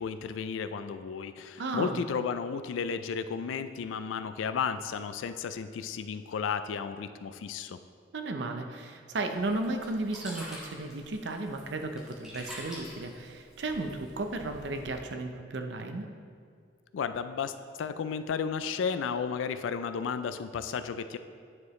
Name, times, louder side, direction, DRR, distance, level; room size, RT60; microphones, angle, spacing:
voice 1, 0.0-7.8 16.9-21.2, left 6 dB, 90° left, 11 dB, 0.3 m, -33 dB
voice 2, 1.6-2.0 8.1-16.0, right 2 dB, 65° right, 5 dB, 0.6 m, -34 dB
Sink (filling or washing), 9.3-15.0, equal, 5° right, 1.2 m, -47 dB
9.5 x 4.8 x 3.1 m, 2.2 s
head